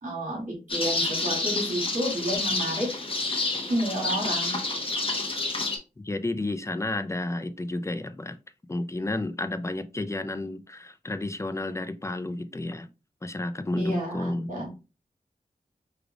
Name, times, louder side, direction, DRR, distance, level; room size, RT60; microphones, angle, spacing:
voice 1, 0.0-2.9 3.7-4.6 13.8-14.7, equal, 60° right, 2.3 m, -30 dB
sound 1, 0.7-5.8, left 2 dB, 35° left, 1.0 m, -29 dB
voice 2, 6.0-8.4 8.7-12.9 13.2-14.5, left 2 dB, 20° left, 0.4 m, -31 dB
5.0 x 3.3 x 2.3 m
wide cardioid pair, 105°, 16 cm